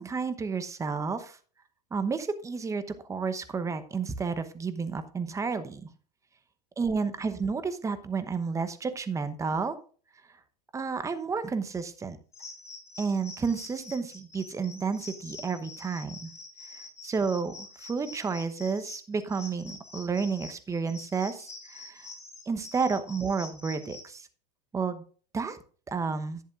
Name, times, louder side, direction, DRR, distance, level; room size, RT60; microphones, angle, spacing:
voice 1, 0.0-1.4 1.9-2.8 3.1-5.9 6.8-9.8 10.7-12.2 13.0-16.3 16.7-17.5 17.8-22.1 22.5-24.3 24.7-25.0 25.3-25.6 25.9-26.4, right 5 dB, 15° right, 12 dB, 0.9 m, -31 dB
sound 1, 12.3-24.1, left 3 dB, 15° left, 4.9 m, -46 dB
11.0 x 10.5 x 2.5 m, 0.41 s
hypercardioid pair, 95°, 21 cm